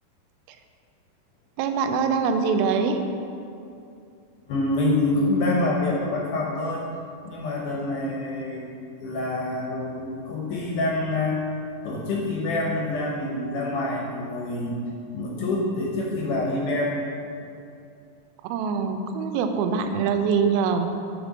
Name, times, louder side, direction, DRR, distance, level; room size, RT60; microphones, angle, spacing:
voice 1, 1.6-3.0 18.4-20.9, right 5 dB, 85° right, 6 dB, 2.4 m, -24 dB
voice 2, 4.5-6.8 7.3-8.6 9.0-11.4 11.8-14.8 15.1-16.9, left 2 dB, 70° left, -2 dB, 2.1 m, -26 dB
6.5 x 5.1 x 6.2 m, 2.6 s
omnidirectional pair, 4.3 m